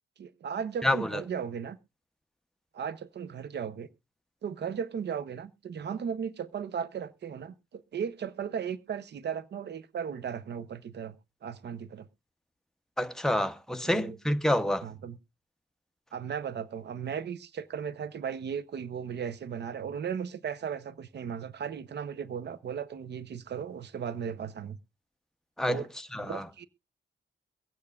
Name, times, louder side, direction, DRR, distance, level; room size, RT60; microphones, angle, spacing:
voice 1, 0.2-1.8 2.7-3.9 4.4-11.2 11.4-12.1 13.8-14.2 14.8-15.2 16.1-24.8 25.7-25.9 26.2-26.7, right 7 dB, 65° right, 0.7 m, -36 dB
voice 2, 0.8-1.2 13.0-14.8 25.6-25.8 26.1-26.5, left 1 dB, 5° left, 0.7 m, -28 dB
23.0 x 8.6 x 2.4 m
wide cardioid pair, 125°, 19 cm